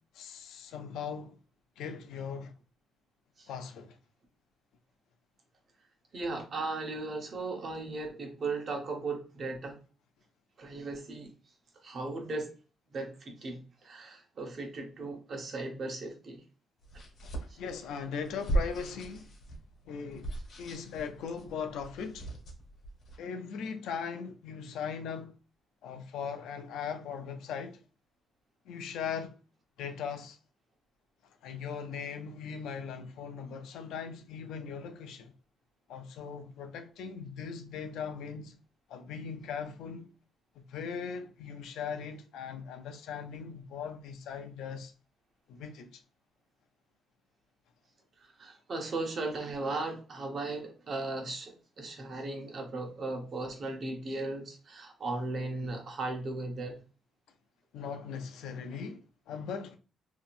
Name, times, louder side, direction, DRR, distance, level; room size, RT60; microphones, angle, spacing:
voice 1, 0.1-1.4 1.8-2.5 3.5-4.0 17.2-19.3 19.8-22.3 23.2-25.3 25.8-27.8 28.7-29.4 29.8-30.4 31.4-35.3 35.9-38.5 38.9-40.1 40.6-44.9 45.5-46.0 57.7-59.8, left 6 dB, 85° left, 0.5 m, -39 dB
voice 2, 6.1-9.8 10.6-11.3 11.8-12.5 12.9-16.4 17.5-17.6 48.2-56.8, right 2 dB, 50° right, 1.0 m, -37 dB
sound 1, 16.8-23.2, right 2 dB, 60° left, 1.2 m, -37 dB
2.8 x 2.8 x 2.5 m
cardioid pair, 90°, 0 cm